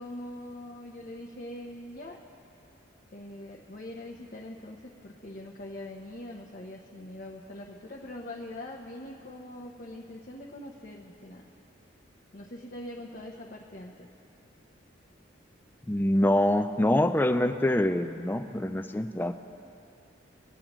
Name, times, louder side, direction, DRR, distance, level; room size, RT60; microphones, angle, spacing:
voice 1, 0.0-2.2 3.1-11.4 12.3-14.1, left 1 dB, 45° left, -1 dB, 0.7 m, -42 dB
voice 2, 15.9-19.3, left 1 dB, 10° left, 8 dB, 0.3 m, -25 dB
21.5 x 8.7 x 3.0 m, 2.6 s
head